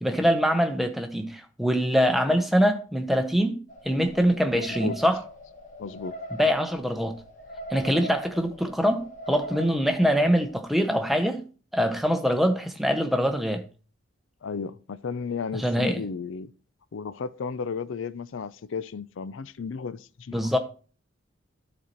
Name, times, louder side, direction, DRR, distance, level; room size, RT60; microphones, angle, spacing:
voice 1, 0.0-3.6 3.8-5.2 6.4-7.2 7.7-11.4 11.7-13.6 15.5-16.0 20.3-20.6, equal, ahead, 0.7 m, -24 dB
sound 1, 3.7-10.6, equal, 40° left, 1.2 m, -41 dB
voice 2, 4.5-5.0 5.8-6.1 14.4-16.5 16.9-20.5, left 5 dB, 75° left, 0.4 m, -34 dB
12.0 x 4.2 x 4.4 m
head